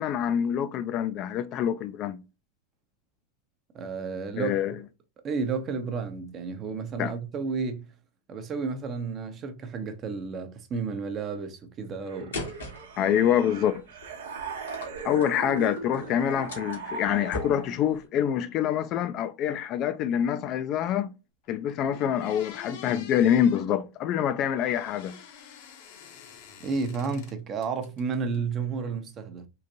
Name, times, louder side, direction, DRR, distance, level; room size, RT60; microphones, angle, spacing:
voice 1, 0.0-2.2 4.4-4.8 7.0-7.1 13.0-13.8 15.0-21.1 21.5-25.1, left 9 dB, 40° left, 0.3 m, -26 dB
voice 2, 3.7-4.5 5.2-7.9 8.3-12.5 26.6-29.5, right 5 dB, 35° right, 0.7 m, -32 dB
sound 1, 12.1-17.9, right 5 dB, 75° right, 0.8 m, -39 dB
sound 2, 12.3-18.1, left 3 dB, 90° left, 1.3 m, -41 dB
sound 3, 21.4-21.5 21.9-23.7 24.6-27.3 27.6-28.4, left 8 dB, 60° left, 0.8 m, -47 dB
3.8 x 2.5 x 2.7 m
hypercardioid pair, 105°, 0 cm